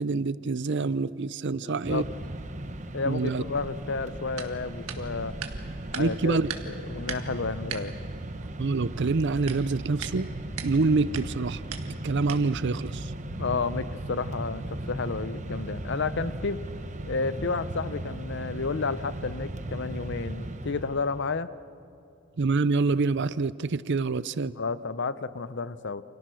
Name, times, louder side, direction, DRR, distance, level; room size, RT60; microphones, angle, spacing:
voice 1, 0.0-2.0 3.1-3.4 5.9-6.5 8.6-10.3 10.6-11.6 12.0-13.1 22.4-24.5, right 3 dB, 50° right, 17 dB, 0.5 m, -26 dB
voice 2, 1.6-2.1 2.9-5.3 5.9-6.4 6.9-7.9 13.3-16.6 17.0-21.5 24.6-26.0, left 4 dB, 50° left, 15 dB, 0.7 m, -31 dB
Mechanisms, 1.8-21.3, right 1 dB, 35° right, 1.0 m, -37 dB
sound 1, 3.4-13.5, right 5 dB, 75° right, 1.8 m, -42 dB
29.0 x 27.5 x 6.3 m, 2.6 s
head